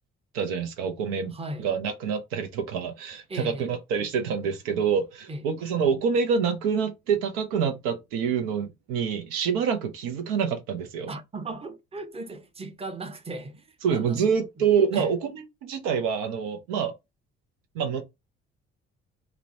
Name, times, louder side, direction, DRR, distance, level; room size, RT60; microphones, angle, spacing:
voice 1, 0.3-11.1 13.8-16.9 17.7-18.0, right 6 dB, 80° right, 0.6 m, -26 dB
voice 2, 1.3-1.7 3.3-3.7 5.3-5.4 11.1-14.7 14.9-15.1, right 2 dB, 20° right, 0.7 m, -37 dB
2.9 x 2.0 x 2.6 m
hypercardioid pair, 45°, 32 cm